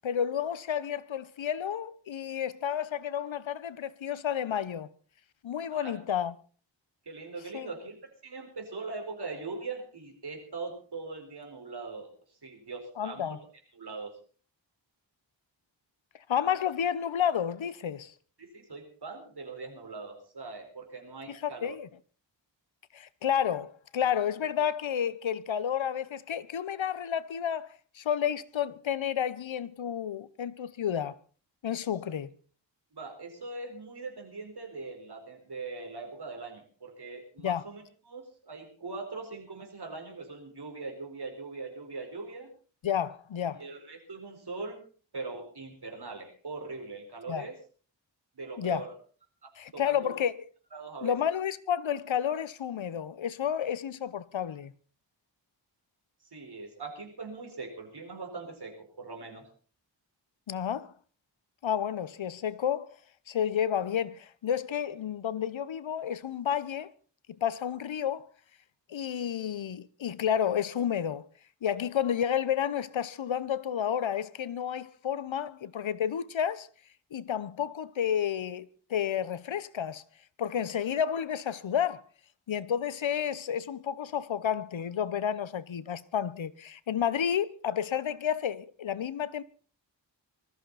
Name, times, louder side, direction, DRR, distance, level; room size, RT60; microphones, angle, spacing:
voice 1, 0.0-4.9 5.4-6.3 7.5-7.7 13.0-13.4 16.3-18.1 21.3-21.9 22.9-31.2 31.6-32.3 37.4-37.6 42.8-43.6 47.3-47.5 48.6-48.9 49.6-50.4 51.0-54.7 60.5-60.9 61.6-62.9 63.3-66.9 67.3-68.3 68.9-71.2 71.6-76.7 77.1-80.0 80.4-82.0 82.5-89.4, left 9 dB, 85° left, 0.9 m, -31 dB
voice 2, 5.7-6.2 7.0-8.0 8.2-12.1 12.4-13.4 13.7-14.2 18.4-21.8 32.9-42.5 43.5-44.8 45.1-47.6 48.3-48.9 49.4-50.1 50.7-51.2 56.2-59.5, right 3 dB, 55° right, 4.7 m, -41 dB
20.0 x 14.0 x 4.2 m
wide cardioid pair, 90°, 45 cm